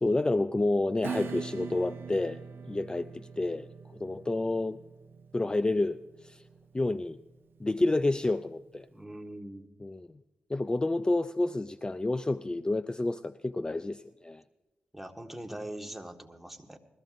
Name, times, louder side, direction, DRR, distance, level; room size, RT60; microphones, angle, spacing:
voice 1, 0.0-2.4 2.7-3.7 4.0-4.8 5.3-6.4 6.7-7.2 7.6-8.9 9.8-10.1 10.5-14.4, left 2 dB, 20° left, 14 dB, 0.4 m, -29 dB
Acoustic guitar / Strum, 1.0-8.2, right 6 dB, 65° right, 0.7 m, -43 dB
voice 2, 8.9-9.7 14.9-16.8, right 1 dB, 5° right, 4 dB, 1.6 m, -42 dB
21.0 x 14.5 x 2.6 m, 1.1 s
supercardioid pair, 45°, 4 cm